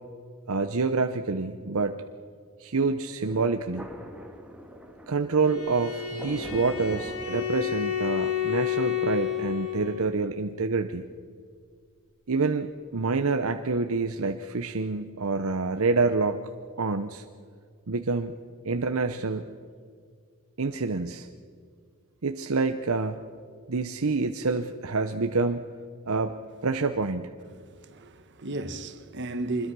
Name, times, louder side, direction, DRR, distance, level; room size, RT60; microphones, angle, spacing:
voice 1, 0.5-2.0 2.6-3.9 5.1-11.0 12.3-16.5 16.8-17.2 17.9-18.3 18.6-19.5 20.6-21.3 22.2-23.2 23.7-25.6 26.1-27.3, right 4 dB, 70° right, 0.8 m, -27 dB
Thunder, 3.2-8.0, equal, 5° right, 2.0 m, -43 dB
Bowed string instrument, 5.4-10.1, left 10 dB, 75° left, 3.1 m, -30 dB
voice 2, 27.6-29.7, right 2 dB, 55° right, 1.5 m, -34 dB
25.0 x 21.0 x 6.2 m
head